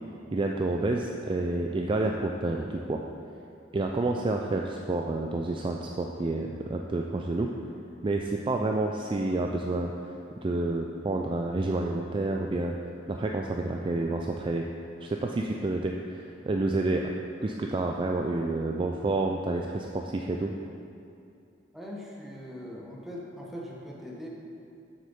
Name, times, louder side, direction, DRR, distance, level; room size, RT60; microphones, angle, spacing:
voice 1, 0.3-3.0 3.7-7.5 8.0-9.9 10.4-12.7 13.1-14.7 15.0-17.1 17.4-20.5, right 2 dB, 25° right, 1 dB, 0.4 m, -29 dB
voice 2, 21.7-24.3, equal, ahead, -4 dB, 1.2 m, -41 dB
7.6 x 6.4 x 5.5 m, 2.5 s
head